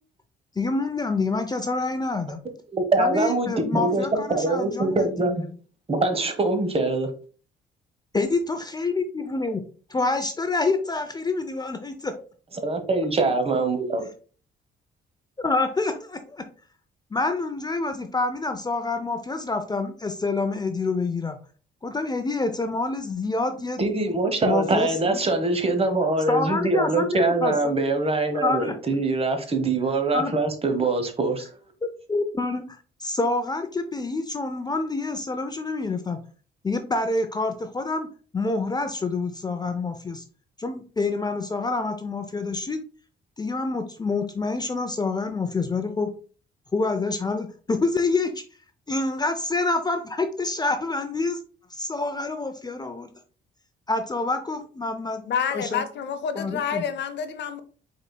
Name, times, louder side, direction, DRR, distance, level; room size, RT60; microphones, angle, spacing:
voice 1, 0.6-2.4 3.0-5.4 8.1-9.6 9.9-12.1 15.4-16.4 17.1-21.4 21.8-23.8 24.4-25.2 26.3-27.7 28.3-28.7 30.1-30.3 32.1-32.6 33.0-36.2 36.6-38.1 38.3-40.2 40.6-42.8 43.4-46.1 46.7-48.4 48.9-51.4 51.7-53.1 53.9-55.2 55.5-55.8 56.3-56.8, left 3 dB, 20° left, 0.5 m, -27 dB
voice 2, 2.7-5.3 5.9-7.1 12.6-14.0 23.8-31.5, right 3 dB, 30° right, 1.0 m, -23 dB
voice 3, 55.3-57.6, left 7 dB, 65° left, 0.6 m, -28 dB
5.0 x 4.1 x 2.2 m
cardioid pair, 90°, 20 cm